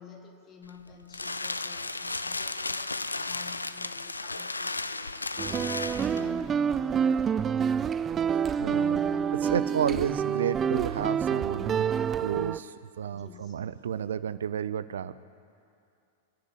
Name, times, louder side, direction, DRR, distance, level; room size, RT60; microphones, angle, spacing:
voice 1, 0.0-7.3 8.4-9.8 12.9-13.6, left 6 dB, 30° left, 3 dB, 2.4 m, -49 dB
sound 1, 0.6-6.3, left 3 dB, 85° left, 0.5 m, -34 dB
sound 2, 5.4-12.6, right 7 dB, 25° right, 0.5 m, -27 dB
voice 2, 8.6-9.0 9.4-15.1, right 8 dB, 65° right, 15 dB, 0.7 m, -32 dB
26.5 x 10.5 x 9.8 m, 2.6 s
figure-of-eight pair, 95°, 0 cm